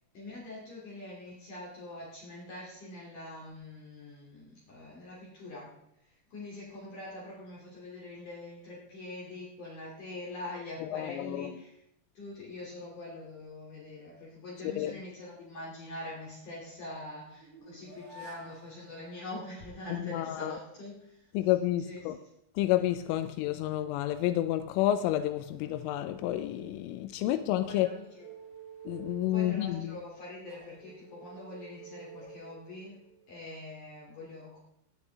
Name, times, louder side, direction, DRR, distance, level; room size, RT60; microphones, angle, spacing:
voice 1, 0.1-11.8 12.1-21.5 21.8-22.3 27.1-27.3 27.7-28.3 29.3-34.6, left 2 dB, 45° left, 3.9 m, -44 dB
voice 2, 10.8-11.5 14.8-14.9 20.1-20.5 21.3-22.2 22.6-27.9 28.9-30.0, left 13 dB, 85° left, 3.1 m, -30 dB
sound 1, 16.5-20.3 24.8-27.1 27.6-33.3, right 4 dB, 60° right, 5.6 m, -52 dB
19.5 x 11.0 x 3.5 m
omnidirectional pair, 5.7 m